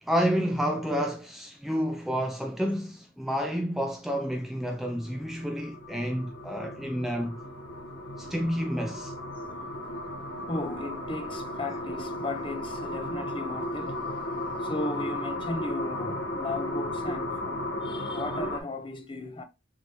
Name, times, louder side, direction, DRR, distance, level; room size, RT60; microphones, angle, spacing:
voice 1, 0.0-7.4 8.2-9.1, equal, ahead, 0.3 m, -29 dB
sound 1, 4.5-18.6, left 1 dB, 75° left, 1.1 m, -35 dB
voice 2, 10.5-19.4, left 2 dB, 25° left, 0.6 m, -36 dB
6.3 x 2.8 x 2.9 m
head